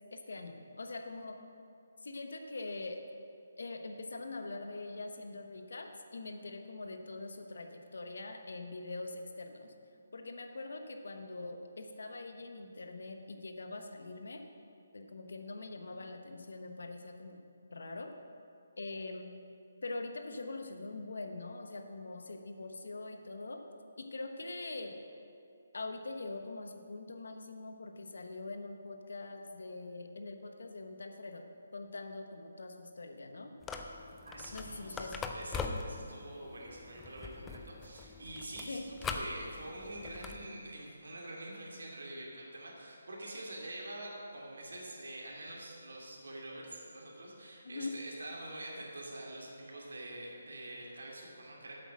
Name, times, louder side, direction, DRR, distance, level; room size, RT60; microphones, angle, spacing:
voice 1, 0.1-1.4 2.0-3.0 3.6-9.7 10.1-14.5 14.9-17.4 17.7-18.1 18.8-19.3 19.8-23.6 24.0-25.0 25.7-31.5 31.7-33.5 34.5-35.3 35.6-35.8 38.7-38.9 47.6-47.9, left 3 dB, 75° left, 5 dB, 1.0 m, -43 dB
sound 1, 33.6-40.5, left 4 dB, 5° left, 0.3 m, -42 dB
voice 2, 34.2-51.8, right 1 dB, 90° right, -3 dB, 2.5 m, -46 dB
8.4 x 7.9 x 6.2 m, 2.5 s
hypercardioid pair, 175°, 0 cm